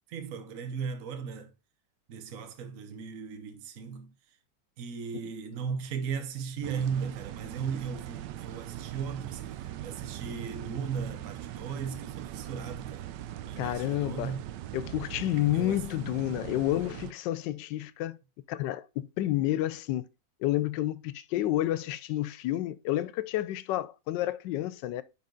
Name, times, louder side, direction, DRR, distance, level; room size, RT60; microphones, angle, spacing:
voice 1, 0.1-1.5 2.1-4.1 4.8-13.1 13.5-14.4 15.5-15.8, right 6 dB, 55° right, 1.2 m, -37 dB
sound 1, 6.6-17.1, right 13 dB, 80° right, 1.2 m, -41 dB
voice 2, 13.6-14.4 14.7-18.2 18.5-20.1 20.4-25.0, left 14 dB, 80° left, 1.2 m, -30 dB
9.6 x 3.9 x 3.8 m
omnidirectional pair, 1.9 m